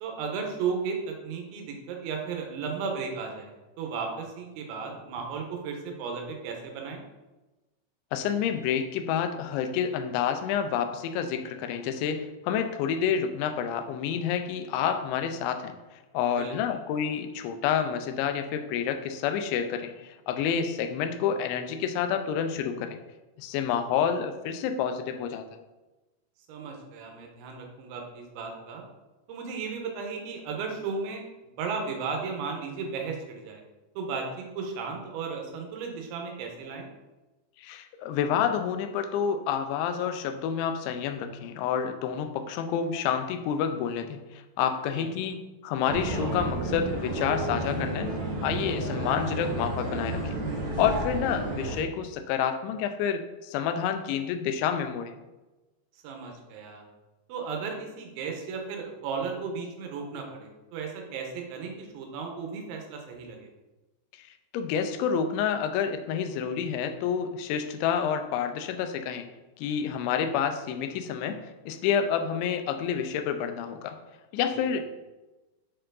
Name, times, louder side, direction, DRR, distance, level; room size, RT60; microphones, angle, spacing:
voice 1, 0.0-3.5 3.8-7.0 16.3-16.8 26.5-28.8 29.3-31.2 31.6-33.6 34.0-36.9 44.9-45.1 56.0-56.9 57.3-63.5 74.6-74.7, right 5 dB, 85° right, 2 dB, 3.3 m, -35 dB
voice 2, 8.1-23.0 23.4-25.5 37.6-48.1 48.4-50.3 50.8-55.1 64.2-64.3 64.5-69.3 69.6-74.0 74.3-74.8, left 8 dB, 90° left, 8 dB, 2.9 m, -29 dB
sound 1, 45.9-51.8, right 2 dB, 65° right, 1.9 m, -31 dB
7.5 x 4.4 x 3.9 m, 1.1 s
omnidirectional pair, 5.2 m